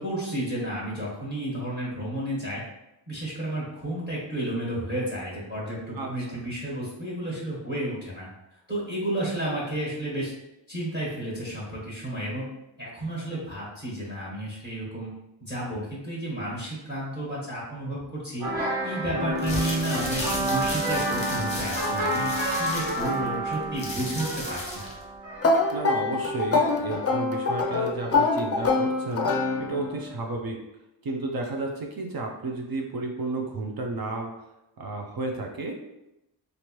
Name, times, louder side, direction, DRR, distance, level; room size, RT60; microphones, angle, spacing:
voice 1, 0.0-2.6 3.1-8.3 8.7-10.3 10.7-12.4 12.8-15.1 15.4-18.5 18.8-24.9, right 1 dB, 25° right, -6 dB, 1.4 m, -32 dB
voice 2, 6.0-6.5 25.7-29.3 29.6-30.6 31.0-34.3 34.8-35.7, right 2 dB, 50° right, 1 dB, 0.5 m, -32 dB
sound 1, 18.4-26.1, right 1 dB, 80° right, 1.2 m, -29 dB
sound 2, 19.3-25.0, left 1 dB, 15° left, 0.8 m, -35 dB
sound 3, 25.4-30.0, left 3 dB, 35° left, 0.4 m, -25 dB
3.1 x 2.6 x 2.9 m, 0.91 s
wide cardioid pair, 95°, 46 cm